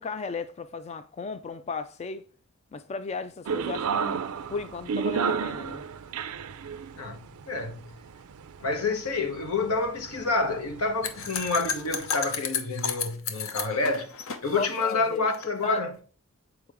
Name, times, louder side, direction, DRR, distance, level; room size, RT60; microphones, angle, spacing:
voice 1, 0.0-2.2 2.7-4.2 4.5-5.8 14.6-15.2 15.6-15.8, left 4 dB, 30° left, 0.3 m, -35 dB
sound 1, 3.5-12.1, right 6 dB, 85° right, 0.5 m, -33 dB
voice 2, 7.5-7.8 8.6-14.1 14.4-15.9, left 3 dB, 80° left, 1.2 m, -28 dB
sound 2, 11.0-15.4, left 7 dB, 65° left, 0.7 m, -33 dB
7.0 x 4.7 x 3.5 m
head